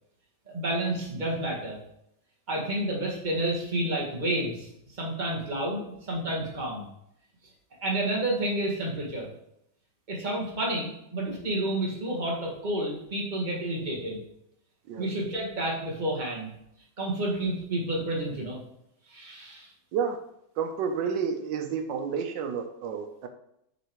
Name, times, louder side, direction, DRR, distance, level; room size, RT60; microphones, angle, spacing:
voice 1, 0.5-1.8 2.5-5.8 6.1-6.9 7.8-9.3 10.1-14.2 15.0-16.5 17.0-18.6 19.1-19.7, right 1 dB, 25° right, -3 dB, 1.8 m, -30 dB
voice 2, 20.6-23.3, right 6 dB, 85° right, 6 dB, 1.4 m, -30 dB
8.2 x 4.0 x 4.6 m, 0.78 s
omnidirectional pair, 1.9 m